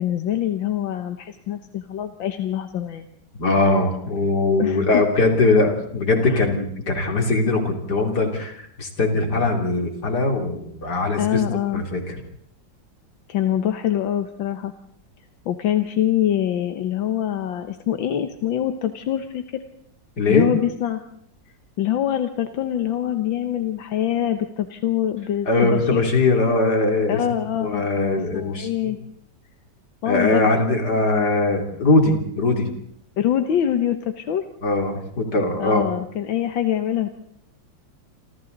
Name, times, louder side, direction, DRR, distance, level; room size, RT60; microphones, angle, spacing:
voice 1, 0.0-3.1 4.6-5.0 6.2-6.5 11.2-11.8 13.3-14.7 15.5-19.6 20.3-21.0 21.8-26.0 27.1-27.8 28.3-29.0 30.0-30.4 33.2-34.4 35.6-37.1, left 11 dB, 85° left, 8 dB, 1.9 m, -24 dB
voice 2, 3.4-11.4 11.7-12.2 20.2-20.5 25.5-27.2 27.6-28.9 30.1-32.7 34.6-35.8, left 2 dB, 60° left, 3 dB, 3.8 m, -21 dB
28.5 x 26.5 x 4.0 m, 0.68 s
omnidirectional pair, 2.0 m